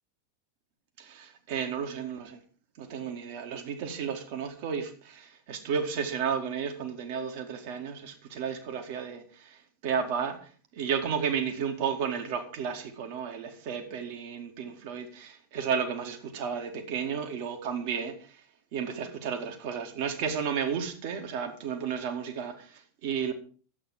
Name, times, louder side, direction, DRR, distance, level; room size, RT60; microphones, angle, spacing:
voice 1, 1.0-2.4 2.8-18.4 18.7-23.3, right 7 dB, 45° right, 2.2 m, -33 dB
12.0 x 8.5 x 6.0 m
figure-of-eight pair, 90°, 0 cm